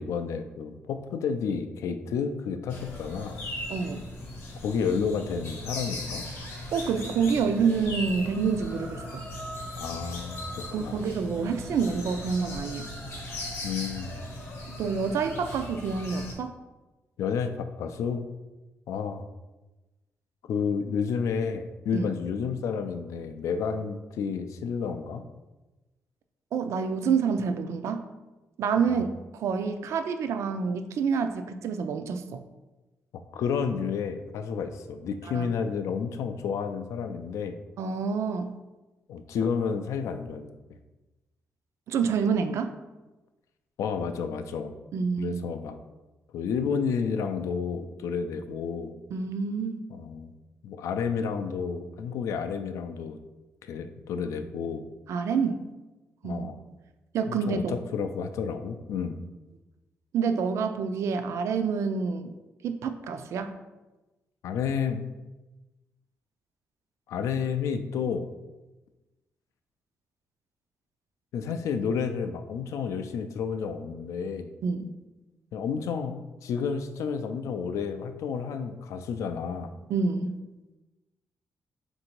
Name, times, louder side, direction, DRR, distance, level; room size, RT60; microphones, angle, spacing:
voice 1, 0.0-3.4 4.6-6.2 9.8-11.0 13.6-14.2 17.2-18.2 18.9-19.2 20.4-25.2 28.8-29.1 33.1-37.6 39.1-40.5 43.8-44.7 45.2-45.8 46.3-48.9 49.9-50.3 50.6-53.2 53.6-54.9 56.2-56.6 57.3-59.3 64.4-65.0 67.1-68.3 71.3-74.5 75.5-79.7, left 6 dB, 80° left, 8 dB, 0.3 m, -31 dB
sound 1, 2.7-16.3, left 1 dB, 45° left, 0.8 m, -38 dB
voice 2, 3.7-4.0 6.7-9.2 10.7-12.9 14.7-16.5 21.9-22.1 26.5-28.1 28.6-29.1 29.3-32.4 35.3-35.5 37.8-38.5 41.9-42.7 44.9-45.4 49.1-49.8 55.1-55.6 56.2-56.5 57.1-57.8 60.1-62.3 62.6-63.5 74.6-74.9 79.9-80.4, right 5 dB, 70° right, 8 dB, 0.3 m, -28 dB
3.7 x 2.6 x 4.4 m, 1.1 s
wide cardioid pair, 165°, 5 cm